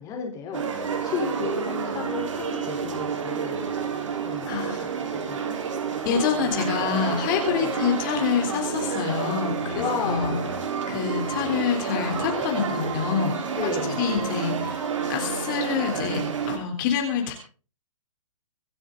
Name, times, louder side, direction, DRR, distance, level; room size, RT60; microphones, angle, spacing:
voice 1, 0.0-3.6 4.2-5.6 7.6-7.7 9.7-10.5 13.6-14.0, left 5 dB, 20° left, 2 dB, 3.9 m, -33 dB
sound 1, 0.5-16.6, right 6 dB, 65° right, 4.1 m, -29 dB
voice 2, 4.5-5.0 6.1-10.3 10.9-13.4 14.0-14.8 15.1-17.3, left 7 dB, 35° left, 3 dB, 3.6 m, -27 dB
25.5 x 9.9 x 3.9 m, 0.38 s
hypercardioid pair, 145°, 17 cm